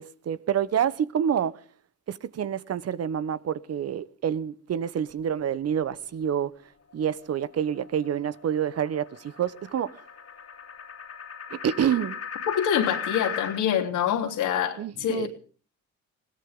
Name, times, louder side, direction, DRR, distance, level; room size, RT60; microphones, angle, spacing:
voice 1, 0.0-1.6 2.1-6.5 6.9-10.0 11.5-12.2 14.8-15.3, right 8 dB, 55° right, 1.1 m, -28 dB
sound 1, 6.9-13.6, left 6 dB, 55° left, 3.0 m, -38 dB
voice 2, 12.5-15.3, left 9 dB, 85° left, 3.4 m, -26 dB
21.0 x 17.5 x 3.7 m
cardioid pair, 90°, 30 cm